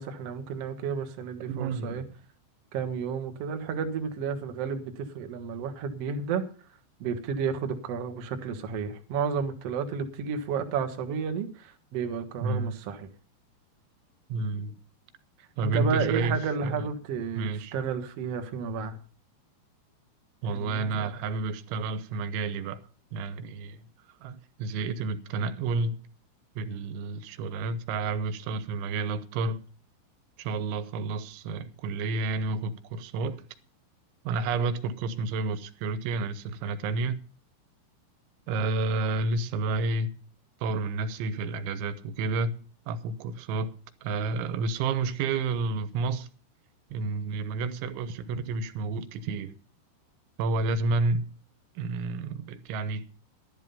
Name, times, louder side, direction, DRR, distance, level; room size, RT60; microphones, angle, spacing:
voice 1, 0.0-2.0 2.7-6.4 7.0-13.1 15.6-19.0 20.4-21.1, right 6 dB, 70° right, 1.5 m, -32 dB
voice 2, 1.5-2.1 12.4-12.8 14.3-14.8 15.6-16.4 16.6-16.9 17.4-17.7 20.4-22.8 23.1-23.8 24.2-26.0 26.6-29.6 30.4-33.4 34.3-37.2 38.5-40.1 40.6-42.6 42.9-43.7 44.0-46.3 46.9-49.6 50.4-51.3 51.8-53.1, right 3 dB, 85° right, 3.4 m, -30 dB
12.5 x 11.0 x 5.4 m
omnidirectional pair, 5.3 m